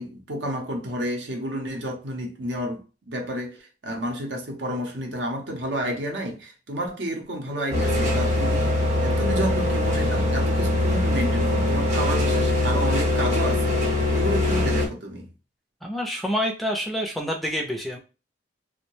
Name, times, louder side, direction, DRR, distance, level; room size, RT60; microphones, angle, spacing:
voice 1, 0.0-13.8 14.1-15.3, equal, 75° right, 0.7 m, -30 dB
sound 1, 7.7-14.9, left 2 dB, 35° right, 0.7 m, -22 dB
voice 2, 15.8-18.0, equal, ahead, 0.3 m, -27 dB
2.6 x 2.1 x 3.0 m
head